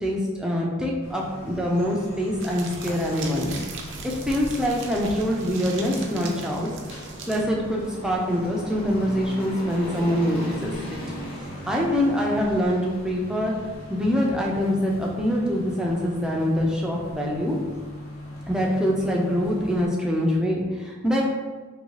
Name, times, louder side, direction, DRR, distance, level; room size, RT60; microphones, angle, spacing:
voice 1, 0.0-3.5 4.0-6.7 7.3-11.0 11.7-13.6 13.9-17.6 18.5-21.2, equal, 5° right, -2 dB, 0.4 m, -24 dB
sound 1, 0.9-20.1, equal, 30° left, 0.9 m, -42 dB
sound 2, 1.0-19.9, left 1 dB, 85° left, 0.8 m, -42 dB
sound 3, 2.4-7.4, right 4 dB, 60° right, 0.4 m, -39 dB
2.7 x 2.7 x 3.0 m, 1.3 s
head